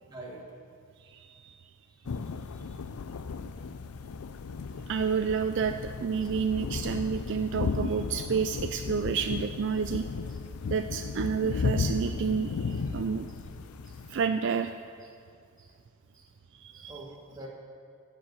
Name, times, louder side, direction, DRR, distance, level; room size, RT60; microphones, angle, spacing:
voice 1, 0.1-0.6 1.9-2.9 3.9-5.2 6.2-6.3 10.3-10.4 12.7-13.0 13.3-13.4 13.8-14.0 15.0-15.2 15.6-15.7 16.1-16.3 16.7-17.5, right 1 dB, 20° right, -3 dB, 1.8 m, -49 dB
voice 2, 1.0-1.6 4.9-10.1 10.7-13.3 14.1-14.7 16.5-16.9, right 6 dB, 55° right, 8 dB, 0.3 m, -30 dB
sound 1, 2.0-14.3, left 4 dB, 75° left, 0.4 m, -35 dB
14.0 x 5.3 x 8.3 m, 2.3 s
head